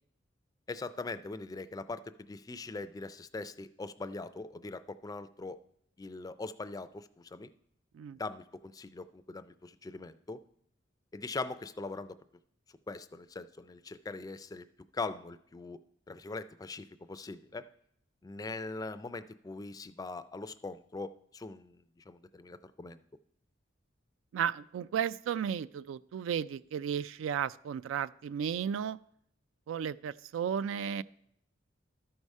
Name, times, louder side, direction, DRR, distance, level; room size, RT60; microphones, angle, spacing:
voice 1, 0.7-5.6 6.0-7.5 8.2-10.4 11.1-12.2 12.9-14.7 14.9-15.8 16.1-17.6 18.2-23.0, left 3 dB, 20° left, 13 dB, 0.3 m, -41 dB
voice 2, 24.3-29.0 29.7-31.0, right 8 dB, 85° right, 17 dB, 0.3 m, -34 dB
12.5 x 4.8 x 5.3 m, 0.70 s
head